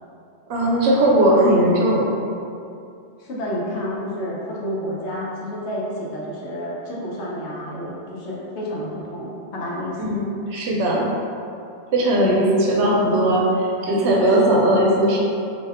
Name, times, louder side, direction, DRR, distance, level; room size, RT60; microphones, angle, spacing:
voice 1, 0.5-2.0 10.0-10.2 10.5-11.1 11.9-15.2, right 1 dB, 80° right, -3 dB, 0.9 m, -18 dB
voice 2, 3.2-10.2 12.2-12.4, equal, 75° left, -5 dB, 0.9 m, -30 dB
2.7 x 2.2 x 3.4 m, 2.5 s
omnidirectional pair, 1.2 m